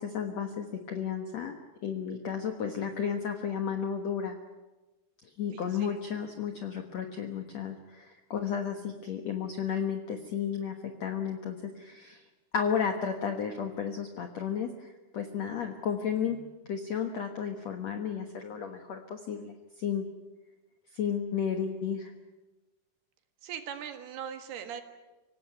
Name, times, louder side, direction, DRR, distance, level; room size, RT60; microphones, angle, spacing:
voice 1, 0.0-1.5 1.8-4.4 5.2-10.8 11.0-12.2 12.5-20.1 20.9-22.1, left 7 dB, 55° left, 5 dB, 2.0 m, -33 dB
voice 2, 5.5-5.9 23.4-24.8, right 8 dB, 80° right, 7 dB, 3.7 m, -41 dB
25.5 x 17.0 x 9.5 m, 1.2 s
omnidirectional pair, 4.5 m